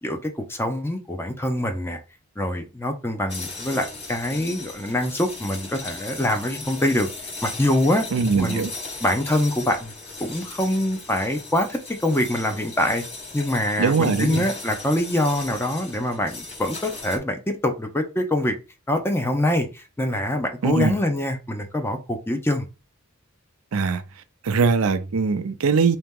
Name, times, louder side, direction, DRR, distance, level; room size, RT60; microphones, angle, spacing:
voice 1, 0.0-2.0 2.4-7.1 7.4-8.1 8.4-8.7 9.0-9.9 10.2-13.0 13.3-18.6 18.9-22.7, left 1 dB, 10° left, 0.7 m, -24 dB
sound 1, 3.3-17.2, left 3 dB, 30° left, 1.4 m, -37 dB
voice 2, 8.1-8.7 13.8-14.4 20.6-21.0 23.7-24.0 24.4-26.0, right 5 dB, 75° right, 0.5 m, -21 dB
3.8 x 2.9 x 3.6 m
head